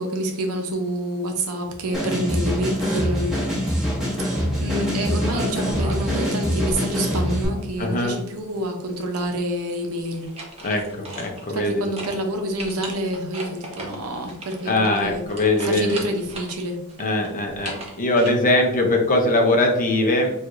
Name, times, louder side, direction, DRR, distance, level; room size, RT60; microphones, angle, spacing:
voice 1, 0.0-3.8 4.2-10.3 11.5-15.2 15.6-16.8, right 1 dB, 75° right, 3 dB, 0.6 m, -28 dB
sound 1, 1.9-7.5, equal, ahead, 1.1 m, -24 dB
sound 2, 5.3-6.2 6.6-7.9 10.0-11.7 12.0-12.2 12.6-16.5 16.9-18.3, right 1 dB, 30° right, 0.8 m, -36 dB
voice 2, 7.8-8.2 10.6-11.8 14.7-16.0 17.0-20.3, left 1 dB, 40° left, 3 dB, 0.6 m, -21 dB
4.5 x 2.4 x 2.5 m, 0.84 s
head